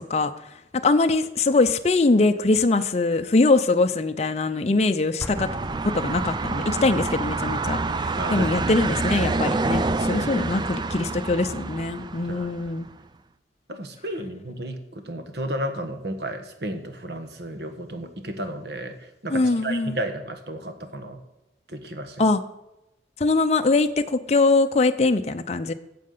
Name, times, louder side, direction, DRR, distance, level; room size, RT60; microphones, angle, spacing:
voice 1, 0.7-5.5 5.9-12.9 19.3-20.0 22.2-22.4 23.2-25.7, left 3 dB, 35° left, 8 dB, 0.5 m, -22 dB
Explosion, 5.2-7.0, left 1 dB, 10° left, 0.9 m, -39 dB
sound 1, 5.3-12.9, right 3 dB, 25° right, 0.4 m, -27 dB
voice 2, 8.2-8.5 10.1-10.5 12.3-12.5 13.7-21.2 21.7-22.2, right 1 dB, 60° right, 7 dB, 1.3 m, -33 dB
9.2 x 7.7 x 6.6 m, 0.92 s
head